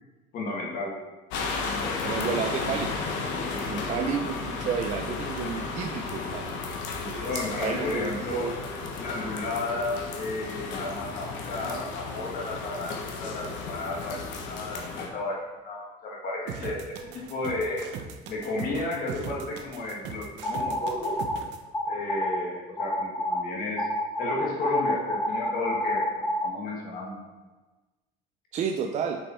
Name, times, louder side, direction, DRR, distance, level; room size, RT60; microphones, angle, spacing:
voice 1, 0.3-1.0 7.2-8.5 9.0-15.4 15.6-17.0 17.3-17.8 18.3-21.1 21.8-23.9 24.2-26.1 26.4-27.3, left 2 dB, 50° left, -2 dB, 1.4 m, -33 dB
sound 1, 1.3-15.1, left 4 dB, 80° left, 1.1 m, -33 dB
voice 2, 2.0-3.1 3.5-6.5 7.0-8.5 28.5-29.2, right 6 dB, 40° right, 3 dB, 0.5 m, -31 dB
sound 2, 16.5-21.6, right 7 dB, 70° right, 0.8 m, -39 dB
sound 3, 20.4-21.4 21.7-22.4 22.8-23.4 23.8-26.5, left 1 dB, 10° left, 0.6 m, -28 dB
7.1 x 5.3 x 4.3 m, 1.2 s
cardioid pair, 160°, 19 cm